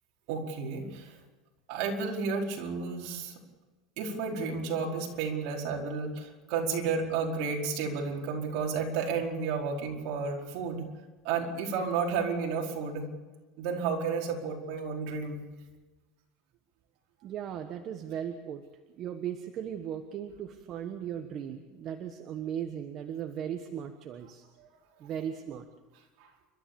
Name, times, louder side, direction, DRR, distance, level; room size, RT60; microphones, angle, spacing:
voice 1, 0.3-1.1 1.7-3.3 4.0-10.9 11.2-13.1 13.6-15.4 24.6-24.7, right 5 dB, 60° right, -1 dB, 4.8 m, -32 dB
voice 2, 17.2-18.6 19.0-24.4 25.0-25.7, right 9 dB, 40° right, 6 dB, 1.3 m, -37 dB
29.5 x 13.5 x 7.1 m, 1.2 s
supercardioid pair, 150°, 0 cm